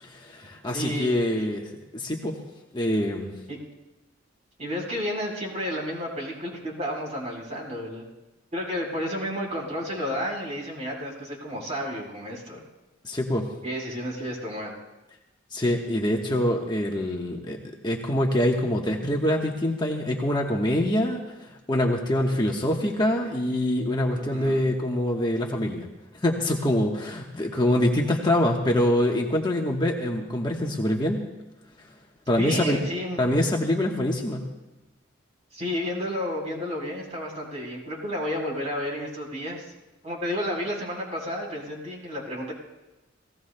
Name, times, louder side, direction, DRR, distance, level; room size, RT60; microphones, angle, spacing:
voice 1, 0.0-2.4 2.7-3.4 13.0-13.5 15.5-25.9 26.2-31.3 32.3-32.8 33.2-34.5, left 1 dB, 25° left, 0 dB, 1.1 m, -25 dB
voice 2, 0.7-1.1 3.5-3.6 4.6-8.0 8.5-12.6 13.6-14.7 22.3-22.6 24.1-24.6 32.4-33.2 35.5-39.6 40.0-42.5, equal, 35° right, -2 dB, 4.0 m, -31 dB
29.5 x 17.5 x 2.2 m, 1.0 s
head